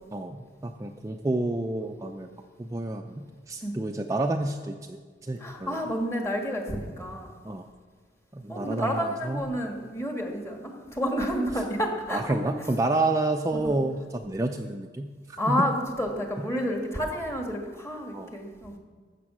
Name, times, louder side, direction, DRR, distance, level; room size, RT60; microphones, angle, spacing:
voice 1, 0.1-2.3 2.6-5.8 7.4-7.7 8.3-9.4 12.1-15.7 18.1-18.3, right 2 dB, 20° right, 3 dB, 0.4 m, -29 dB
voice 2, 5.4-7.4 8.5-12.5 13.6-13.7 15.4-18.8, equal, 15° left, 2 dB, 1.6 m, -30 dB
13.5 x 7.5 x 6.1 m, 1.5 s
head